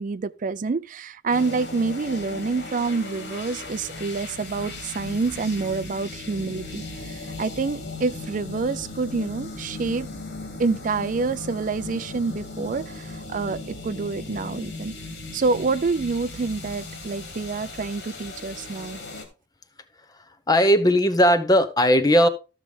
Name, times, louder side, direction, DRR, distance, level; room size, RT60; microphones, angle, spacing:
voice 1, 0.0-10.1 10.6-14.9 15.3-19.0, right 4 dB, 45° right, 0.4 m, -27 dB
sound 1, 1.3-19.3, left 2 dB, 75° left, 3.0 m, -37 dB
voice 2, 20.5-22.3, equal, 20° left, 0.9 m, -17 dB
14.0 x 6.4 x 3.4 m
head